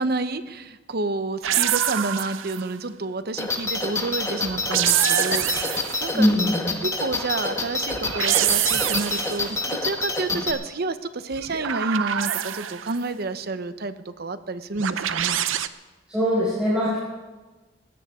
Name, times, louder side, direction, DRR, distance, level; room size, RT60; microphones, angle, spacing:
voice 1, 0.0-6.3 6.8-15.4, right 3 dB, 55° right, 11 dB, 0.8 m, -29 dB
sound 1, 1.4-2.7 4.5-6.1 7.9-9.5 11.3-13.0 14.8-15.7, right 11 dB, 85° right, 0.6 m, -25 dB
sound 2, 3.4-10.5, left 3 dB, 15° left, 1.5 m, -28 dB
voice 2, 6.1-6.7 16.1-17.0, equal, 5° right, -10 dB, 5.3 m, -21 dB
19.5 x 16.5 x 3.7 m, 1.2 s
head